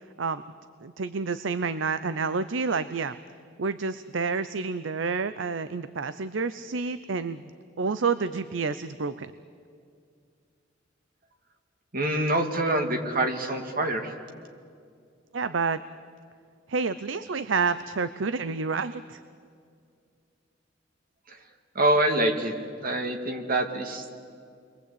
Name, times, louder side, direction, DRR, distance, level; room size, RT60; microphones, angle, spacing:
voice 1, 0.8-3.2 3.6-7.5 7.8-9.3 15.3-15.8 16.7-19.2, right 4 dB, 75° right, 12 dB, 0.7 m, -29 dB
voice 2, 11.9-14.1 21.3-21.4 21.7-22.5 22.8-24.1, right 1 dB, 50° right, 5 dB, 2.3 m, -25 dB
29.0 x 22.0 x 8.6 m, 2.3 s
head